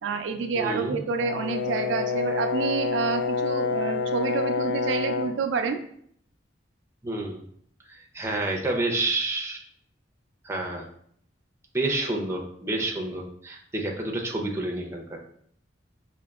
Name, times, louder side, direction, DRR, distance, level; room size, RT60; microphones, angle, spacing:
voice 1, 0.0-5.8, right 5 dB, 85° right, 6 dB, 0.4 m, -28 dB
voice 2, 0.5-1.0 7.0-7.4 7.9-9.6 10.4-10.8 11.7-15.2, right 2 dB, 15° right, 0 dB, 0.5 m, -29 dB
Brass instrument, 1.2-5.4, left 5 dB, 70° left, 0.3 m, -28 dB
5.0 x 2.8 x 2.3 m, 0.65 s
head